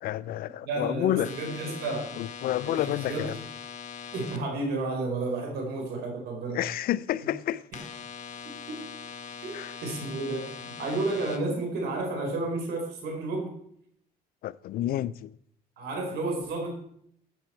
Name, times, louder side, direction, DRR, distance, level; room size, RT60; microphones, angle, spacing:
voice 1, 0.0-1.3 2.2-3.4 6.5-7.6 9.5-9.7 14.4-15.3, left 13 dB, 60° left, 0.4 m, -29 dB
voice 2, 0.6-2.1 2.6-3.4 4.1-6.6 7.7-7.8 8.7-8.8 9.4-13.5 15.8-16.7, right 2 dB, 75° right, 4.3 m, -32 dB
sound 1, 1.2-4.4 7.7-11.4, left 6 dB, 45° left, 1.4 m, -42 dB
14.0 x 7.9 x 4.4 m
cardioid pair, 110°, 17 cm